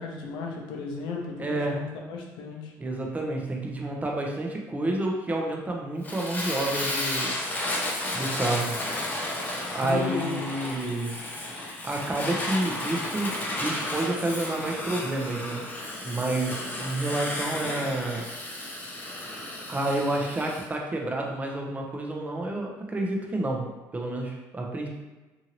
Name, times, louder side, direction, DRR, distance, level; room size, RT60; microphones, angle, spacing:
voice 1, 0.0-2.7 9.6-10.4, left 4 dB, 80° left, 0 dB, 0.6 m, -35 dB
voice 2, 1.4-1.8 2.8-7.3 8.1-8.8 9.7-11.1 11.8-13.3 13.6-15.6 16.0-18.2 19.7-24.9, right 2 dB, 20° right, 0 dB, 0.6 m, -29 dB
Fire, 6.0-20.7, left 1 dB, 20° left, 0.6 m, -33 dB
2.7 x 2.6 x 2.8 m, 1.2 s
cardioid pair, 95°, 8 cm